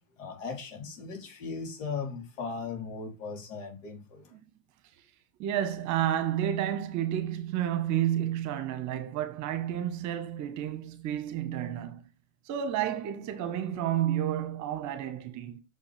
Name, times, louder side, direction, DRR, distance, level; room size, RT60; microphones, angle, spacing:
voice 1, 0.2-4.3, left 5 dB, 65° left, 3.8 m, -38 dB
voice 2, 5.4-12.0 12.5-15.6, right 11 dB, 40° right, 1.4 m, -30 dB
6.4 x 5.7 x 3.4 m
hypercardioid pair, 95°, 41 cm